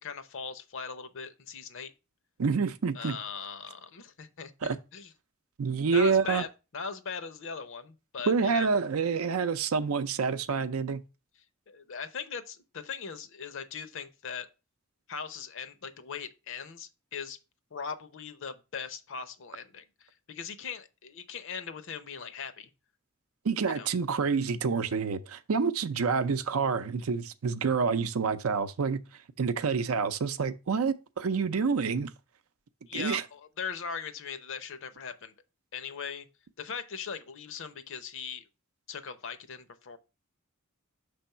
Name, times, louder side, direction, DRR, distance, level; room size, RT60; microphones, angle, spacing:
voice 1, 0.0-1.9 2.9-5.1 5.9-8.7 11.7-14.5 15.1-17.4 17.7-22.7 23.7-23.9 32.9-35.3 35.7-36.3 36.6-38.5 38.9-40.0, left 6 dB, 65° left, 0.7 m, -40 dB
voice 2, 2.4-3.2 4.6-4.8 5.6-6.4 8.3-11.0 23.4-29.0 29.4-32.1 32.9-33.2, right 5 dB, 90° right, 0.5 m, -28 dB
6.1 x 3.4 x 5.5 m
head